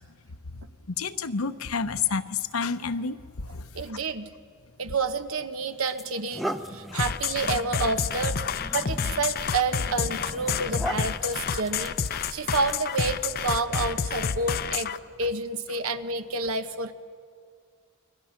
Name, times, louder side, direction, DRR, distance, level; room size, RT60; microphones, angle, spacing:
voice 1, 0.9-3.6 6.9-7.0 12.1-12.2, left 5 dB, 90° left, 10 dB, 0.9 m, -29 dB
voice 2, 3.7-4.3 4.8-8.4 8.7-12.0 12.3-16.9, right 3 dB, 70° right, 9 dB, 1.1 m, -29 dB
sound 1, 5.0-5.2 5.8-13.2, equal, ahead, 0.7 m, -39 dB
sound 2, 7.0-15.0, left 6 dB, 45° left, 0.6 m, -29 dB
30.0 x 22.5 x 5.9 m, 2.2 s
head